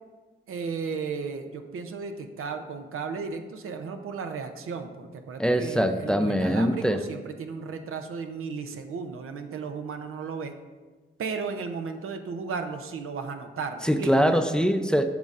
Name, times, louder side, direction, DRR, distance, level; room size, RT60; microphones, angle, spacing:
voice 1, 0.5-10.5 11.2-14.1, right 5 dB, 90° right, 6 dB, 0.5 m, -34 dB
voice 2, 5.4-7.0 13.8-15.1, equal, 5° left, 8 dB, 0.5 m, -23 dB
9.2 x 5.3 x 2.4 m, 1.3 s
cardioid pair, 50°, 21 cm